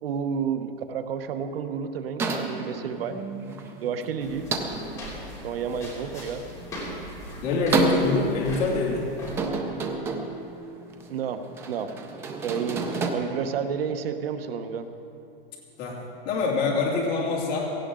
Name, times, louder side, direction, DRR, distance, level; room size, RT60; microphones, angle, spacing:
voice 1, 0.0-3.2 3.8-4.5 5.4-6.5 11.1-11.9 12.4-14.9, right 7 dB, 75° right, 9 dB, 1.1 m, -30 dB
sound 1, 2.2-13.1, right 3 dB, 10° right, 0.4 m, -31 dB
sound 2, 4.2-9.4, left 1 dB, 10° left, 3.1 m, -40 dB
voice 2, 7.4-9.1 15.8-16.0 16.2-17.8, left 3 dB, 30° left, -4 dB, 2.6 m, -25 dB
17.0 x 15.5 x 3.8 m, 2.7 s
supercardioid pair, 165°, 29 cm